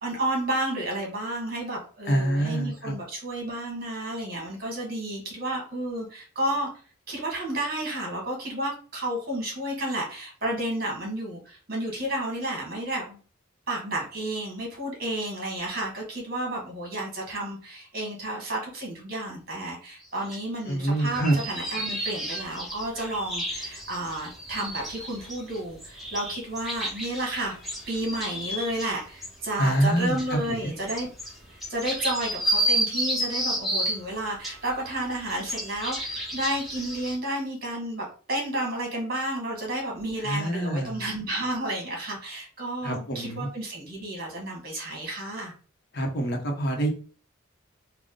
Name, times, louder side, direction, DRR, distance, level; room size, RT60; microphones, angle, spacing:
voice 1, 0.0-6.7 7.1-13.2 13.7-27.6 27.9-31.1 31.5-45.5, right 1 dB, 45° right, -1 dB, 1.6 m, -31 dB
voice 2, 2.1-2.9 20.7-21.3 29.6-30.7 40.2-41.0 42.8-43.5 45.9-46.9, right 1 dB, 50° left, 2 dB, 0.9 m, -26 dB
sound 1, 20.3-20.4 20.9-28.9 29.2-29.3 29.8-34.0 34.4-37.1, right 1 dB, ahead, 0.9 m, -31 dB
3.8 x 2.2 x 3.7 m, 0.40 s
head